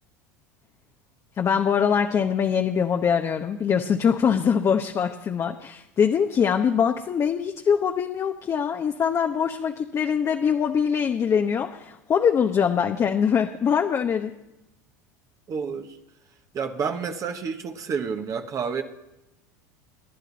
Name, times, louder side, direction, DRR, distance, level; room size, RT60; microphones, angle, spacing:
voice 1, 1.4-14.3, left 7 dB, 30° left, 4 dB, 1.0 m, -23 dB
voice 2, 15.5-16.0 16.5-18.8, right 6 dB, 35° right, 6 dB, 1.3 m, -29 dB
24.5 x 10.5 x 4.1 m, 0.93 s
hypercardioid pair, 95°, 9 cm